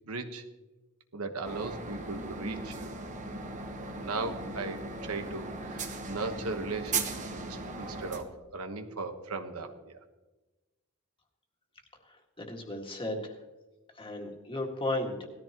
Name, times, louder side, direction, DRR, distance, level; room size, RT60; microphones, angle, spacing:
voice 1, 0.1-0.4 1.1-2.9 3.8-10.0, right 3 dB, 80° right, 6 dB, 1.2 m, -38 dB
sound 1, 1.4-8.2, right 3 dB, 35° right, 1.1 m, -38 dB
voice 2, 12.0-13.4 13.9-15.3, left 1 dB, 25° left, 2 dB, 1.9 m, -35 dB
18.5 x 13.5 x 3.0 m, 1.1 s
head